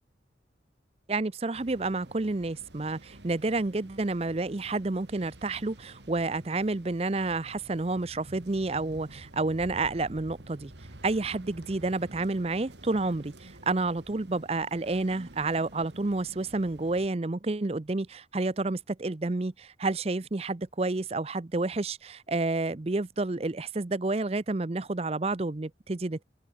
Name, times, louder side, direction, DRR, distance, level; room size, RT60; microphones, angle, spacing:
voice 1, 1.1-10.7 11.0-26.2, right 3 dB, 35° right, 0.6 m, -30 dB
sound 1, 1.5-17.1, right 1 dB, 75° right, 3.2 m, -50 dB
open air
head